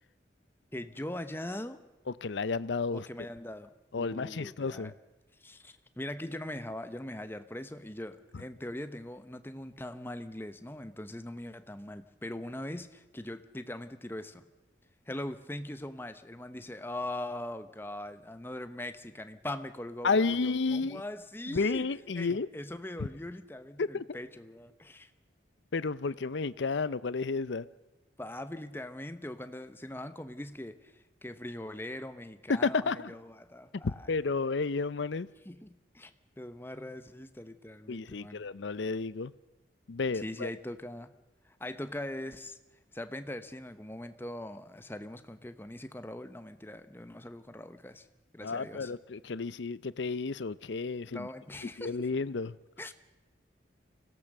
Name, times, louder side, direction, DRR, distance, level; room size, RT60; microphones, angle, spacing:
voice 1, 0.7-1.8 2.9-3.7 4.0-4.9 5.4-14.4 15.1-21.9 22.2-25.1 28.2-34.1 35.5-36.1 36.4-38.4 40.1-41.1 41.4-42.6 42.9-48.1 48.3-48.9 51.1-52.1 52.8-52.9, left 1 dB, 10° left, 0.9 m, -41 dB
voice 2, 2.1-3.1 3.9-4.9 20.0-21.0 21.5-22.5 23.8-24.2 25.7-27.7 32.5-33.1 33.8-35.3 37.9-39.3 39.9-40.5 48.4-51.3 51.8-52.6, left 4 dB, 70° left, 0.6 m, -31 dB
24.5 x 17.0 x 6.6 m
head